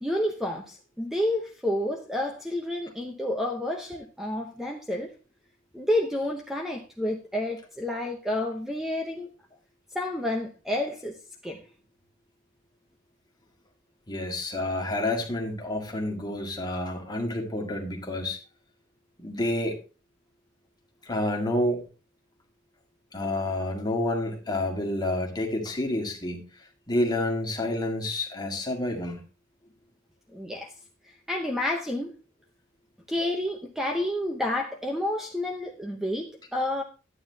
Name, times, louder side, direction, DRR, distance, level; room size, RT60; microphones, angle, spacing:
voice 1, 0.0-5.1 5.7-9.3 9.9-11.2 11.4-11.6 30.3-30.7 31.3-32.1 33.1-36.8, left 1 dB, ahead, 0.8 m, -30 dB
voice 2, 14.1-18.4 19.2-19.8 21.1-21.8 23.1-26.5 26.9-29.2, left 1 dB, 20° left, 1.8 m, -29 dB
11.5 x 9.2 x 2.8 m
head